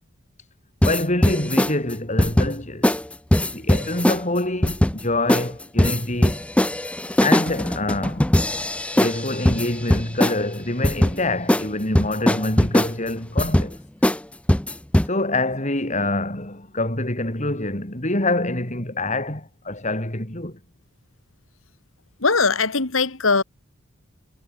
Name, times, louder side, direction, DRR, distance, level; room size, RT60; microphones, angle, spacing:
voice 1, 0.8-2.9 3.5-6.4 7.2-8.3 9.0-13.8 15.0-20.6, left 2 dB, 35° left, 5.1 m, -26 dB
sound 1, 0.8-1.7 2.2-2.5 2.8-3.0 3.3-4.2 4.6-5.0 5.3-5.5 5.8-10.4 10.8-11.1 11.5-11.7 11.9-12.9 13.4-13.7 14.0-14.2 14.5-15.1, left 1 dB, 5° left, 0.5 m, -20 dB
voice 2, 22.2-23.4, left 4 dB, 75° left, 2.2 m, -20 dB
head